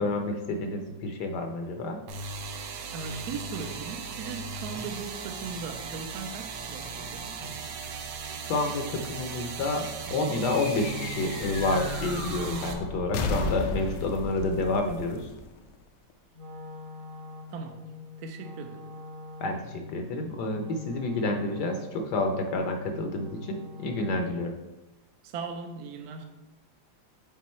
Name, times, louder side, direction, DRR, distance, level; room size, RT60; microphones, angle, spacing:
voice 1, 0.0-2.0 8.4-15.3 19.4-24.5, left 2 dB, 70° left, 4 dB, 1.1 m, -29 dB
sound 1, 2.1-12.7, right 5 dB, 90° right, 1.5 m, -37 dB
voice 2, 2.9-7.4 17.5-17.8 18.2-18.9 25.2-26.2, right 5 dB, 70° right, 5 dB, 1.0 m, -38 dB
sound 2, 10.4-16.1, left 3 dB, 90° left, 1.4 m, -34 dB
Wind instrument woodwind instrument, 16.3-24.5, left 3 dB, 50° right, 1.1 m, -45 dB
6.2 x 3.7 x 4.2 m, 1.0 s
omnidirectional pair, 2.1 m